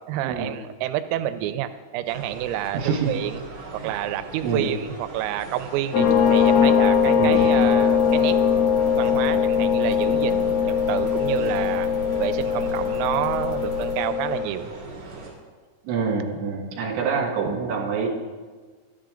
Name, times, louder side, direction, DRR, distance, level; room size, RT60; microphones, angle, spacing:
voice 1, 0.1-3.4 3.7-8.4 9.0-10.5 10.9-11.9 12.2-14.7, right 12 dB, 85° right, 10 dB, 3.2 m, -29 dB
sound 1, 2.1-15.3, right 2 dB, 40° right, 3.0 m, -39 dB
voice 2, 2.7-3.1 3.8-3.9 4.4-4.7 6.0-6.2 7.2-7.5 9.3-9.4 15.9-18.1, right 5 dB, 65° right, -1 dB, 3.6 m, -26 dB
sound 2, 5.9-14.5, left 7 dB, 85° left, 3.7 m, -21 dB
sound 3, 6.0-13.9, equal, 35° left, 2.9 m, -37 dB
13.0 x 11.0 x 3.8 m, 1.5 s
omnidirectional pair, 5.9 m